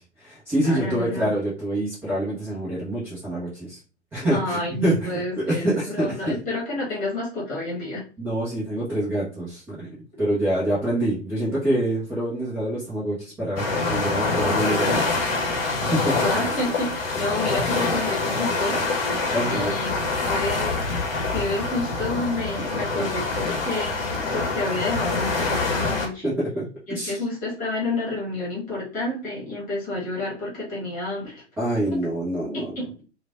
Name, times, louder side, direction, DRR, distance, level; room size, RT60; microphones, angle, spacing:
voice 1, 0.0-3.8 4.1-6.4 8.2-9.9 10.2-15.3 15.9-16.1 19.3-19.7 22.6-22.7 22.9-23.1 26.2-27.2 31.6-32.7, right 1 dB, 5° right, -10 dB, 0.5 m, -26 dB
voice 2, 0.6-1.3 4.2-8.0 16.1-19.9 20.3-20.8 21.3-26.3 26.9-31.4 32.5-33.0, left 2 dB, 25° left, -4 dB, 1.3 m, -30 dB
sound 1, 13.6-26.1, left 3 dB, 50° left, 0.8 m, -25 dB
3.1 x 2.2 x 2.3 m, 0.34 s
figure-of-eight pair, 105°, 36 cm